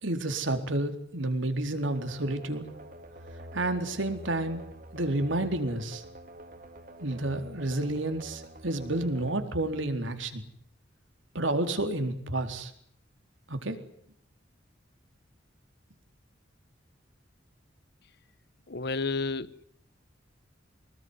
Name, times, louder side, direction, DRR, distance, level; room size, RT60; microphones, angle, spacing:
voice 1, 0.0-2.6 3.5-6.0 7.0-10.4 11.3-12.7 13.5-13.8, right 2 dB, 85° right, 4.1 m, -30 dB
sound 1, 1.8-10.5, right 1 dB, 45° right, 3.3 m, -47 dB
voice 2, 18.7-19.6, left 3 dB, 60° left, 1.1 m, -31 dB
24.5 x 21.0 x 9.8 m
head